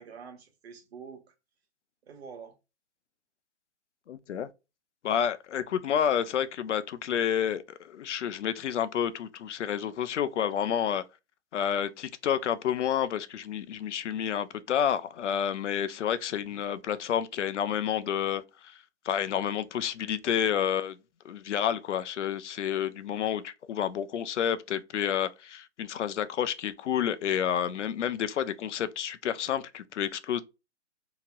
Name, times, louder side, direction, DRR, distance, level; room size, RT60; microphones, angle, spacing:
voice 1, 0.0-1.3 2.1-2.5 16.4-16.7, right 6 dB, 60° right, 1.1 m, -46 dB
voice 2, 4.1-4.5 5.0-11.0 11.5-18.8 19.1-21.0 21.2-30.4, left 9 dB, 85° left, 0.5 m, -29 dB
2.9 x 2.8 x 2.3 m
hypercardioid pair, 145°, 35 cm